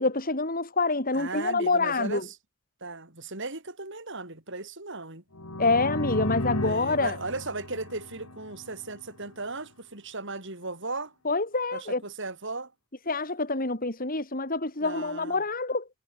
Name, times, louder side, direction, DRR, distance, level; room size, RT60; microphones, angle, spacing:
voice 1, 0.0-2.3 5.6-7.2 11.2-12.0 13.1-15.9, left 3 dB, 40° left, 3.8 m, -26 dB
voice 2, 1.1-2.4 2.8-5.2 6.6-11.1 11.7-12.7 14.8-15.4, right 3 dB, 55° right, 6.9 m, -36 dB
sound 1, 5.3-9.1, left 1 dB, 85° left, 4.0 m, -34 dB
head